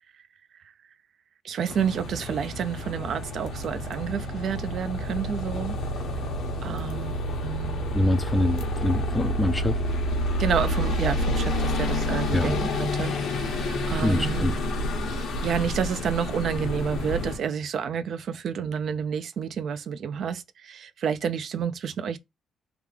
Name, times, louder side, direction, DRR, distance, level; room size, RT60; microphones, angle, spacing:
voice 1, 1.4-5.8 6.6-7.8 10.4-14.5 15.1-22.2, right 7 dB, 65° right, 0.3 m, -30 dB
sound 1, 1.7-17.4, left 1 dB, 75° left, 0.9 m, -29 dB
voice 2, 7.9-9.8 12.3-12.6 14.0-14.5, left 1 dB, 10° left, 0.4 m, -25 dB
3.4 x 2.3 x 3.1 m
cardioid pair, 90°, 0 cm